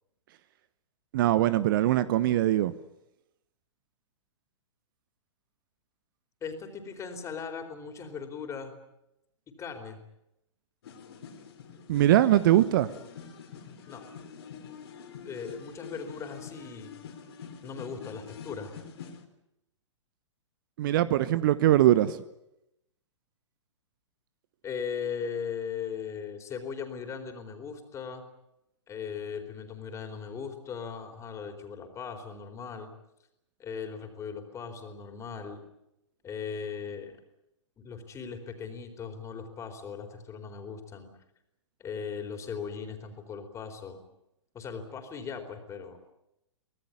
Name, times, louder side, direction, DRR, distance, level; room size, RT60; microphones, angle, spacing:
voice 1, 1.1-2.7 11.9-12.9 20.8-22.2, right 13 dB, 45° right, 15 dB, 1.0 m, -22 dB
voice 2, 6.4-8.7 9.6-10.0 13.9-14.0 15.2-16.9 17.6-18.7 24.6-28.2 28.9-32.9 33.6-35.6 36.2-37.2 37.8-41.1 41.8-44.0 44.5-46.0, left 6 dB, 20° left, 6 dB, 4.2 m, -38 dB
sound 1, 10.8-19.2, left 6 dB, 55° left, 4.1 m, -46 dB
25.0 x 18.5 x 9.7 m, 0.85 s
figure-of-eight pair, 110°, 16 cm